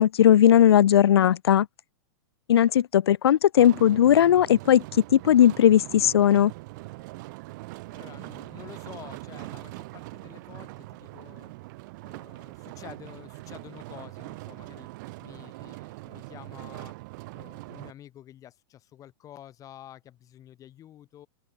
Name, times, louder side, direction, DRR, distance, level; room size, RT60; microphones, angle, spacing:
voice 1, 0.0-1.7 2.5-4.8 5.1-6.5, left 10 dB, 90° left, 0.5 m, -18 dB
sound 1, 3.6-17.9, right 23 dB, 50° right, 3.4 m, -42 dB
voice 2, 7.9-11.5 12.0-14.9 15.2-16.9 17.3-21.3, left 11 dB, 25° left, 5.0 m, -49 dB
open air
hypercardioid pair, 135°, 13 cm